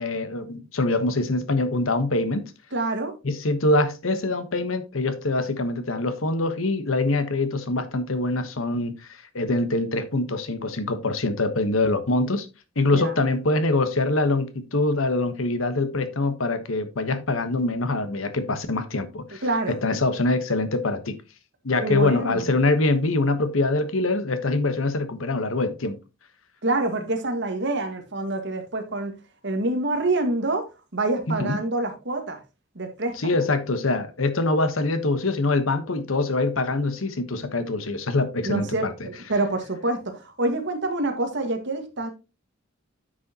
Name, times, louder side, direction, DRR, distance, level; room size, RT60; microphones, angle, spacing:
voice 1, 0.0-2.5 3.2-8.9 9.3-12.5 12.8-19.4 19.7-21.2 21.6-26.0 31.3-31.6 33.2-38.9, left 2 dB, 80° left, 1.2 m, -24 dB
voice 2, 2.7-3.2 12.9-13.1 19.4-19.8 21.8-22.6 26.6-29.1 29.4-30.7 30.9-32.4 32.8-33.4 38.4-42.1, right 2 dB, 60° right, 1.7 m, -26 dB
9.5 x 6.3 x 2.9 m
head